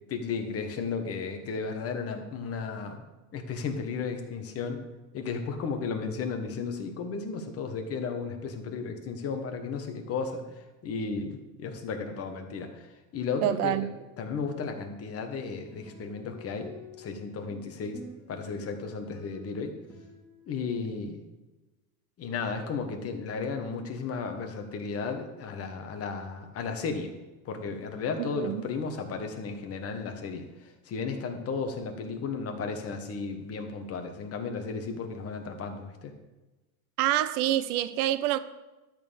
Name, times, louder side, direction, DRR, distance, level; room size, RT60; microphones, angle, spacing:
voice 1, 0.1-3.0 3.3-4.8 5.1-13.8 14.2-16.7 17.0-18.0 18.3-19.7 20.5-21.2 22.2-27.1 27.4-36.1, left 5 dB, 30° left, 1.5 m, -34 dB
voice 2, 13.4-13.9 28.2-28.7 37.0-38.4, right 13 dB, 65° right, 0.8 m, -27 dB
sound 1, 15.5-21.0, left 2 dB, 5° left, 2.5 m, -49 dB
12.5 x 4.4 x 7.1 m
supercardioid pair, 130°, 47 cm